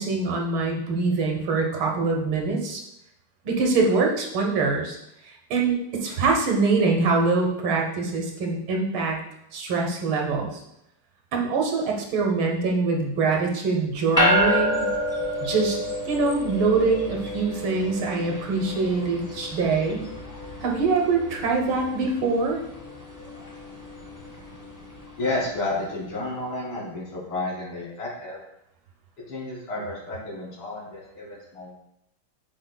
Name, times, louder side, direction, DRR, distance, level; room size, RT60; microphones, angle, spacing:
voice 1, 0.0-2.8 3.5-5.0 5.5-9.2 9.5-10.6 11.3-14.9 15.4-15.8 16.1-20.1 20.6-22.6, right 4 dB, 70° right, 1 dB, 1.8 m, -24 dB
sound 1, 14.2-25.7, equal, 15° left, 0.8 m, -29 dB
voice 2, 25.2-28.4 29.3-31.7, left 2 dB, 85° left, -6 dB, 3.3 m, -31 dB
9.2 x 4.9 x 2.2 m, 0.81 s
omnidirectional pair, 2.4 m